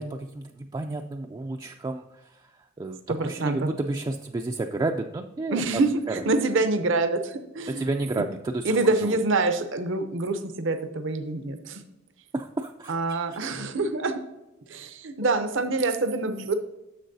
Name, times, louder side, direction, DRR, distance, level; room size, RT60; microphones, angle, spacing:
voice 1, 0.0-5.6 6.1-6.2 7.7-8.8 9.1-9.2 12.3-13.6, right 2 dB, 20° right, 3 dB, 0.3 m, -31 dB
voice 2, 3.1-3.7 5.5-7.9 8.6-11.8 12.9-14.1 14.7-16.5, right 3 dB, 70° right, 8 dB, 0.7 m, -26 dB
10.0 x 7.4 x 2.7 m, 0.98 s
head